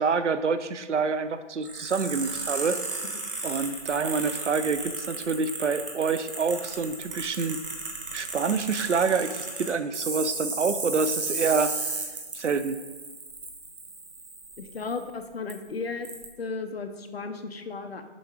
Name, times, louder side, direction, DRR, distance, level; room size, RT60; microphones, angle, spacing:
voice 1, 0.0-3.0 3.4-7.6 8.1-11.7 12.3-12.8, right 5 dB, 80° right, 11 dB, 0.6 m, -27 dB
sound 1, 1.6-15.0 15.5-15.6 16.0-16.2, right 3 dB, 50° right, 1.2 m, -34 dB
voice 2, 14.6-16.1 16.4-18.1, left 4 dB, 60° left, 8 dB, 0.7 m, -35 dB
7.0 x 3.8 x 4.9 m, 1.3 s
figure-of-eight pair, 160°, 35 cm